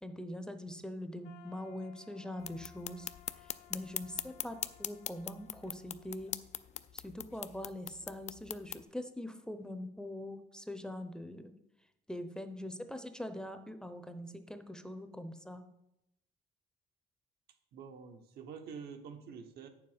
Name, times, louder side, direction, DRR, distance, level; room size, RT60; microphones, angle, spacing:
voice 1, 0.0-3.1 3.4-6.3 6.9-11.5 12.1-15.6, left 1 dB, 5° left, 9 dB, 0.7 m, -43 dB
sound 1, 1.2-7.1, left 10 dB, 85° left, 0.8 m, -60 dB
sound 2, 2.4-8.8, left 9 dB, 40° left, 0.5 m, -42 dB
voice 2, 17.7-19.7, right 6 dB, 70° right, 6 dB, 1.3 m, -47 dB
8.9 x 7.0 x 5.1 m, 0.83 s
cardioid pair, 110°, 17 cm